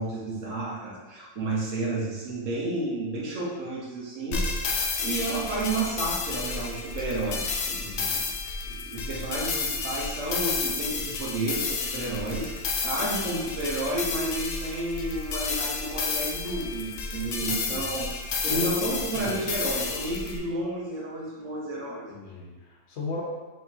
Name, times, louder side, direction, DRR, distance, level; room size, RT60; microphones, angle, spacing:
voice 1, 0.0-8.2 8.6-12.5 12.8-18.1 18.4-22.1, right 2 dB, 80° right, -4 dB, 1.3 m, -31 dB
sound 1, 4.3-20.4, left 4 dB, 80° left, 0.3 m, -31 dB
voice 2, 7.8-8.2 17.4-18.0 18.5-18.9 19.1-19.5 22.1-23.2, left 3 dB, 60° left, -3 dB, 1.2 m, -37 dB
4.8 x 3.4 x 2.8 m, 1.2 s
omnidirectional pair, 1.3 m